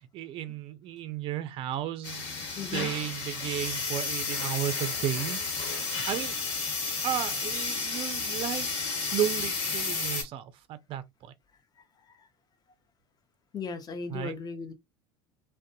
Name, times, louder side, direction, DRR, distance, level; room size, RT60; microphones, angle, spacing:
voice 1, 0.1-2.2 2.7-6.4 7.0-8.7 9.0-11.3 14.1-14.4, right 11 dB, 40° right, 0.4 m, -34 dB
sound 1, 2.0-10.2, left 4 dB, 60° left, 1.3 m, -32 dB
voice 2, 2.6-2.9 12.1-12.3 13.5-14.7, left 5 dB, 30° left, 0.7 m, -37 dB
2.5 x 2.1 x 2.5 m
hypercardioid pair, 75°, 14 cm